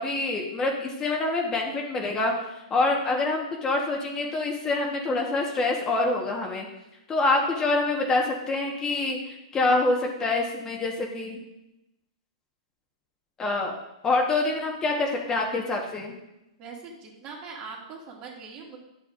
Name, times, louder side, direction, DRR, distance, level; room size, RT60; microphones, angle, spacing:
voice 1, 0.0-2.3 2.7-6.7 7.1-11.4 13.4-13.7 14.0-16.1, left 2 dB, 20° left, 1 dB, 1.1 m, -26 dB
voice 2, 16.6-18.8, right 4 dB, 40° right, -1 dB, 2.1 m, -41 dB
10.0 x 7.0 x 2.5 m, 0.91 s
hypercardioid pair, 130°, 3 cm